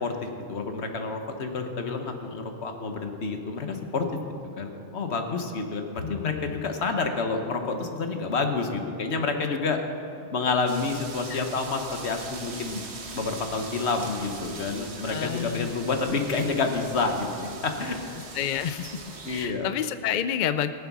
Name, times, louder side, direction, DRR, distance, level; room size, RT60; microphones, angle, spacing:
voice 1, 0.0-4.1 4.6-9.8 10.3-12.8 13.1-18.0 19.2-19.7, left 4 dB, 75° left, 5 dB, 1.4 m, -29 dB
voice 2, 6.0-6.6 11.3-11.4 15.1-15.7 18.3-19.0 19.3-20.7, left 9 dB, 55° left, 11 dB, 0.5 m, -29 dB
sound 1, 10.7-19.5, right 3 dB, 70° right, 1.5 m, -41 dB
19.0 x 7.4 x 6.1 m, 2.7 s
omnidirectional pair, 1.1 m